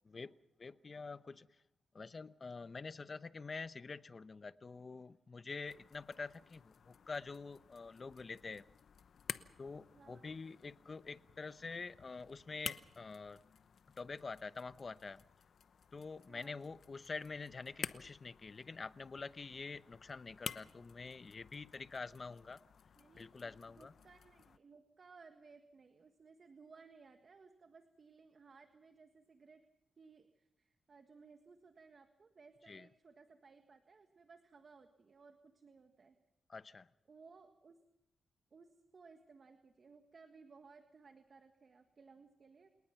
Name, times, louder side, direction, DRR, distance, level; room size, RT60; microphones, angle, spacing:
voice 1, 0.6-1.5 1.9-8.7 9.6-13.4 14.0-15.2 15.9-22.6 23.1-23.9 32.7-32.9 36.5-36.9, left 4 dB, 45° left, 0.9 m, -47 dB
sound 1, 5.6-24.6, left 7 dB, 70° left, 0.9 m, -52 dB
voice 2, 9.9-10.3 16.3-16.7 23.0-29.7 30.0-36.2 37.1-37.8 38.5-42.7, right 4 dB, 50° right, 1.6 m, -61 dB
29.0 x 19.0 x 5.9 m
cardioid pair, 75°, 0 cm